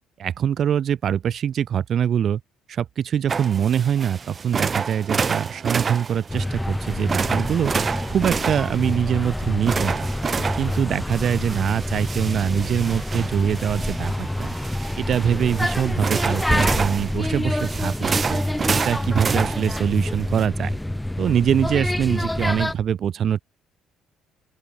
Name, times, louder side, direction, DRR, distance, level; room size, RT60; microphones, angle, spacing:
voice 1, 0.2-2.4 2.7-7.7 8.1-10.1 10.6-14.5 15.0-18.4 18.8-20.8 21.2-23.4, right 9 dB, 55° right, 1.0 m, -23 dB
sound 1, 3.3-20.4, right 5 dB, 35° right, 0.6 m, -29 dB
sound 2, 6.3-22.8, left 1 dB, 10° left, 0.9 m, -27 dB
open air
supercardioid pair, 65°, 0 cm